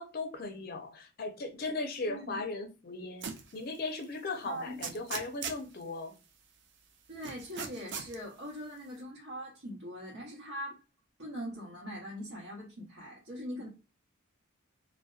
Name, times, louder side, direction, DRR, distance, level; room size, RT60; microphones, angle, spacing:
voice 1, 0.0-6.2, left 3 dB, 45° left, 0.4 m, -38 dB
voice 2, 2.1-2.4 4.4-4.8 7.1-10.8 11.2-13.7, equal, 75° right, 0.9 m, -41 dB
sound 1, 3.2-3.5 4.0-4.1 4.8-5.7 7.2-8.1, right 6 dB, 50° right, 0.4 m, -38 dB
2.6 x 2.1 x 2.3 m
head